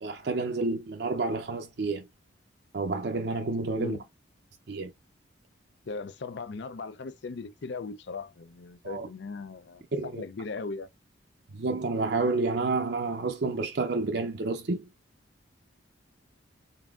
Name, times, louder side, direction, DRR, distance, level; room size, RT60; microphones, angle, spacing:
voice 1, 0.0-2.1 2.7-4.0 4.7-4.9 8.8-9.1 9.9-10.2 11.5-14.9, right 3 dB, 55° right, 0.5 m, -29 dB
voice 2, 5.9-10.9, left 4 dB, 65° left, 0.5 m, -38 dB
4.0 x 3.5 x 2.4 m
head